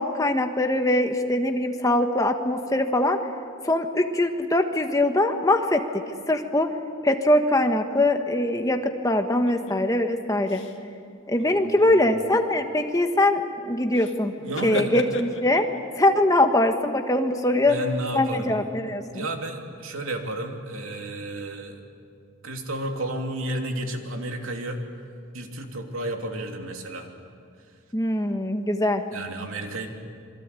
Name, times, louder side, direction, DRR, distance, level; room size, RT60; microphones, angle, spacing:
voice 1, 0.0-3.2 3.6-5.8 6.3-6.7 7.0-10.6 11.3-14.3 14.6-15.7 16.0-17.8 18.1-19.0 27.9-29.0, left 1 dB, 15° left, 5 dB, 1.5 m, -22 dB
sound 1, 9.5-9.8 10.5-10.8 11.3-12.1 13.9-14.2 14.4-15.8, left 2 dB, 60° left, 2.0 m, -34 dB
voice 2, 11.8-12.4 14.4-14.9 17.6-18.6 19.1-21.8 22.4-24.8 25.3-27.1 29.1-29.9, right 1 dB, 80° right, 3 dB, 2.9 m, -32 dB
27.5 x 22.5 x 8.5 m, 2.3 s
head